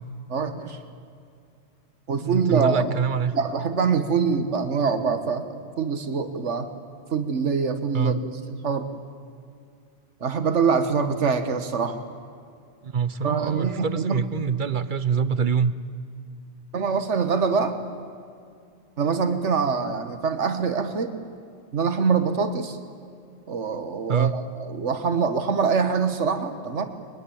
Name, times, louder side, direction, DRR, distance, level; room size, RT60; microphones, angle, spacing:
voice 1, 0.3-0.8 2.1-2.9 3.3-6.7 7.1-8.9 10.2-12.0 13.2-14.2 16.7-17.8 19.0-21.1 21.7-22.8 23.5-26.9, right 5 dB, 85° right, 9 dB, 1.7 m, -24 dB
voice 2, 2.2-3.3 7.9-8.2 12.8-15.7 24.1-24.3, right 6 dB, 45° right, 15 dB, 1.1 m, -24 dB
23.5 x 21.0 x 8.7 m, 2.4 s
omnidirectional pair, 1.2 m